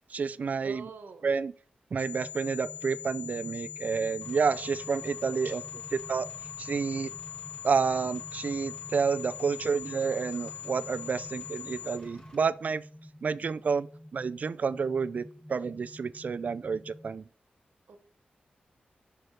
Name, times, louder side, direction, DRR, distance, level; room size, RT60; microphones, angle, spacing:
voice 1, 0.1-0.9 1.2-1.5 1.9-5.6 6.1-6.3 6.6-7.1 7.6-12.8 13.2-13.9 14.1-17.3, right 5 dB, 55° right, 0.4 m, -29 dB
voice 2, 0.6-1.2 5.2-5.8 17.9-18.0, right 5 dB, 80° right, 1.3 m, -46 dB
sound 1, 2.0-12.0, left 10 dB, 70° left, 1.5 m, -42 dB
sound 2, 2.1-17.1, equal, 5° left, 0.7 m, -50 dB
Engine, 4.2-12.4, left 1 dB, 25° left, 1.9 m, -51 dB
6.1 x 5.0 x 5.7 m
wide cardioid pair, 115°, 3 cm